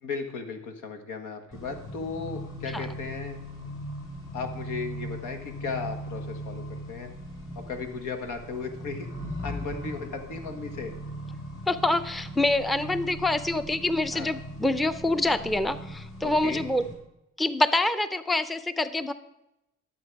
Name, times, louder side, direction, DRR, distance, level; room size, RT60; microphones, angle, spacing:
voice 1, 0.0-3.4 4.3-7.1 7.5-9.1 9.4-10.9 14.1-14.3 16.2-16.6, left 4 dB, 85° left, 6 dB, 1.6 m, -36 dB
Accelerating revving vroom, 1.5-16.9, equal, 45° left, 4.3 m, -39 dB
voice 2, 11.7-16.8 17.4-19.1, left 2 dB, ahead, 12 dB, 0.5 m, -26 dB
12.0 x 7.6 x 4.7 m, 0.87 s
cardioid pair, 90°, 30 cm